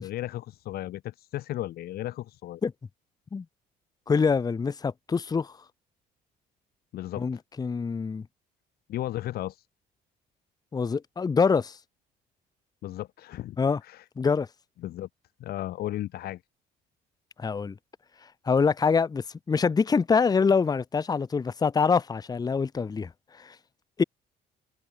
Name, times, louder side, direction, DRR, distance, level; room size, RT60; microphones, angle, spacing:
voice 1, 0.0-2.6 6.9-7.4 8.9-9.7 12.8-14.0 14.8-15.1 15.4-16.4, left 14 dB, 65° left, 1.0 m, -35 dB
voice 2, 4.1-5.5 7.2-8.3 10.7-11.8 13.6-13.8 14.2-14.5 17.4-17.7 18.5-23.1 23.4-23.5 24.0-24.1, left 5 dB, 25° left, 0.9 m, -25 dB
cardioid pair, 110°, 17 cm